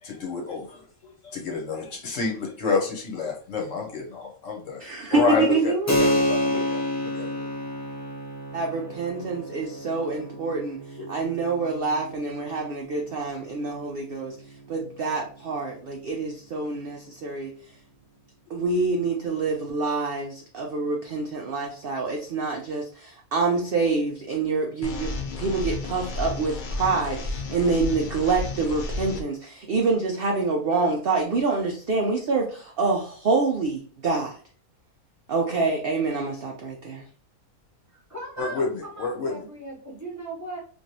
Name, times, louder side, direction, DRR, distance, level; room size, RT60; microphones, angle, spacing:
voice 1, 0.0-4.8 5.1-5.7 6.0-7.5 11.0-11.1 38.4-39.4, left 4 dB, 65° left, 0 dB, 1.1 m, -29 dB
voice 2, 4.8-6.2 8.5-10.8 11.1-14.3 14.7-17.5 18.5-34.4 35.3-37.0, right 3 dB, 65° right, 0 dB, 0.5 m, -26 dB
Keyboard (musical), 5.9-16.1, left 1 dB, 20° left, 0.5 m, -30 dB
sound 1, 24.8-29.2, left 3 dB, 90° left, 0.4 m, -32 dB
voice 3, 37.9-40.6, right 2 dB, 15° right, -6 dB, 1.0 m, -38 dB
3.1 x 2.6 x 2.7 m, 0.43 s
omnidirectional pair, 1.5 m